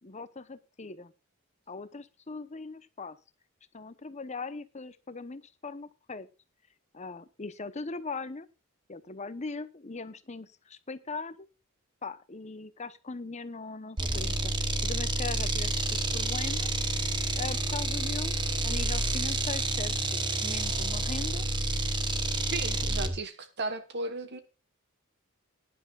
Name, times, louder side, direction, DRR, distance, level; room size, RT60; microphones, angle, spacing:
voice 1, 0.0-1.1 1.7-3.2 3.7-6.3 6.9-8.5 8.9-11.5 12.0-17.1 17.4-18.3 18.6-21.4, left 3 dB, 30° left, 0.8 m, -40 dB
sound 1, 14.0-23.2, right 2 dB, 20° right, 1.0 m, -29 dB
voice 2, 22.5-24.4, right 3 dB, 50° right, 1.2 m, -35 dB
19.0 x 11.0 x 2.4 m
head